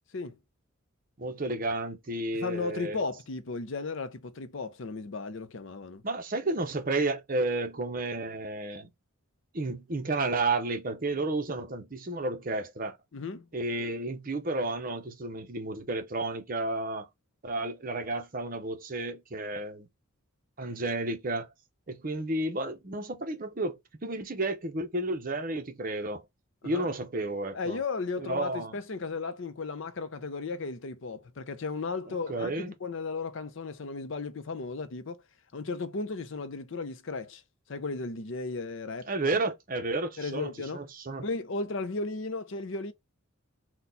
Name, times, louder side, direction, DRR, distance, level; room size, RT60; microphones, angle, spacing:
voice 1, 1.2-3.1 6.0-8.9 9.5-13.0 13.5-17.1 17.4-19.9 20.6-21.5 21.9-26.2 26.6-27.8 28.2-28.8 32.3-32.7 39.1-41.3, right 2 dB, 40° right, 0.7 m, -32 dB
voice 2, 2.4-6.0 13.1-13.5 26.6-26.9 27.5-35.2 35.5-37.4 37.7-39.3 40.2-40.8 41.2-42.9, left 3 dB, 60° left, 0.5 m, -35 dB
4.2 x 2.2 x 3.9 m
head